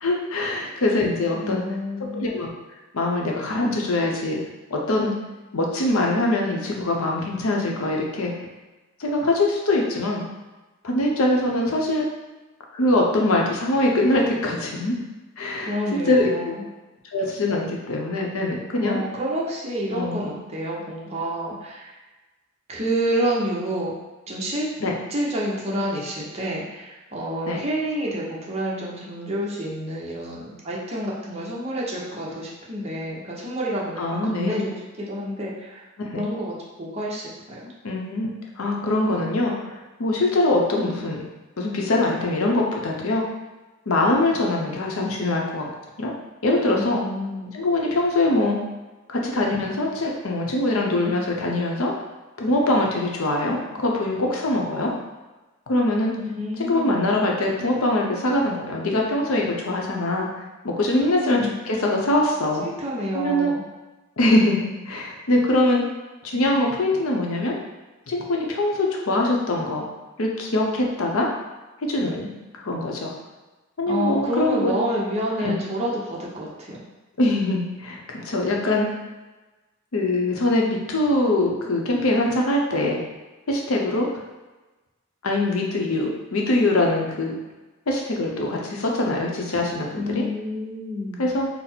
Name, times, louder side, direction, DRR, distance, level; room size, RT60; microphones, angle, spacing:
voice 1, 0.0-1.6 2.1-2.5 2.9-4.4 4.7-5.1 5.5-8.3 9.0-10.2 10.8-12.1 12.7-15.0 15.4-15.8 16.1-16.5 17.1-19.0 19.9-20.3 24.8-24.9 27.5-27.6 34.0-34.6 36.1-36.2 37.8-39.7 40.0-41.2 41.6-43.3 43.9-45.7 46.0-46.1 46.4-47.0 47.5-48.6 49.1-51.9 52.4-54.9 55.7-56.1 56.6-60.3 60.6-62.7 63.1-63.5 64.2-65.8 66.2-67.6 68.1-69.9 70.2-71.3 71.9-72.3 72.6-73.1 73.8-74.7 75.4-75.7 77.2-78.9 79.9-83.0 83.5-84.1 85.2-87.3 87.9-90.2 91.2-91.5, left 2 dB, 85° left, 0 dB, 0.7 m, -23 dB
voice 2, 1.4-2.3 15.6-16.6 18.8-21.9 22.7-23.9 24.3-24.7 25.1-35.8 36.1-37.7 46.7-47.5 56.2-57.2 60.8-61.6 62.8-63.6 73.9-76.8 89.9-91.3, equal, 30° right, -5 dB, 0.8 m, -29 dB
4.0 x 2.0 x 4.3 m, 1.2 s
head